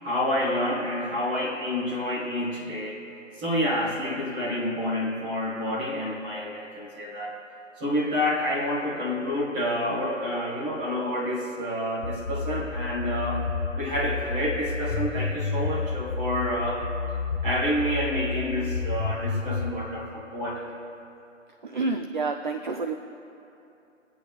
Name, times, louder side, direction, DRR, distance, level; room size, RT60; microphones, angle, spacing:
voice 1, 0.0-3.1 3.4-7.4 7.8-13.5 13.8-16.8 17.4-20.8, left 1 dB, 10° right, -5 dB, 1.5 m, -28 dB
sound 1, 12.0-19.7, left 4 dB, 35° left, 0.8 m, -30 dB
voice 2, 21.6-22.9, right 3 dB, 40° right, 6 dB, 0.4 m, -28 dB
21.5 x 8.4 x 3.3 m, 2.8 s
figure-of-eight pair, 155°, 38 cm